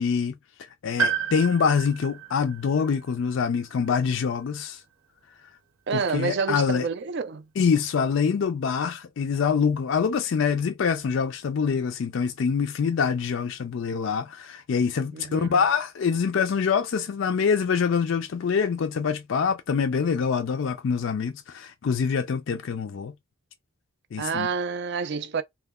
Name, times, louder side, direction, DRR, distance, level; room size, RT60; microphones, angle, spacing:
voice 1, 0.0-4.8 5.9-6.9 7.6-23.1 24.1-24.5, left 6 dB, 60° left, 0.4 m, -25 dB
Piano, 1.0-4.9 5.1-5.2 6.4-6.5, right 7 dB, 85° right, 0.8 m, -32 dB
voice 2, 5.9-7.5 15.1-15.6 24.2-25.4, right 5 dB, 50° right, 0.4 m, -28 dB
2.2 x 2.1 x 3.5 m
head